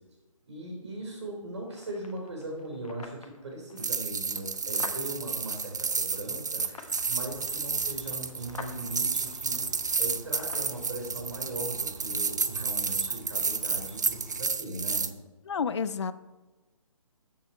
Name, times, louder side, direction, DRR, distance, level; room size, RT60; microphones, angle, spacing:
voice 1, 0.5-15.1, right 1 dB, 55° right, 0 dB, 4.1 m, -39 dB
sound 1, 1.7-10.7, left 4 dB, 75° left, 1.6 m, -49 dB
sound 2, 3.8-15.1, right 5 dB, 30° right, 0.4 m, -31 dB
sound 3, 6.8-14.4, right 3 dB, 70° right, 1.8 m, -49 dB
voice 2, 15.5-16.1, left 6 dB, 50° left, 14 dB, 0.5 m, -29 dB
13.0 x 7.3 x 4.4 m, 1.2 s
hypercardioid pair, 175°, 18 cm